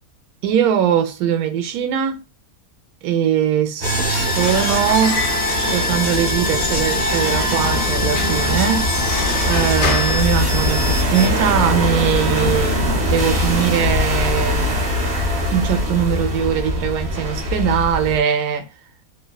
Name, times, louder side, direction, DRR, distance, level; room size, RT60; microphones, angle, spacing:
voice 1, 0.4-2.2 3.0-5.3 5.7-8.9 9.4-14.8 15.5-18.7, right 9 dB, 75° right, 1.0 m, -21 dB
sound 1, 3.8-11.3, left 2 dB, 40° left, 0.5 m, -25 dB
sound 2, 3.8-18.2, left 1 dB, 50° right, 0.9 m, -22 dB
Squeak / Wood, 4.2-11.1, left 5 dB, 85° left, 1.1 m, -30 dB
2.8 x 2.2 x 2.2 m
omnidirectional pair, 1.6 m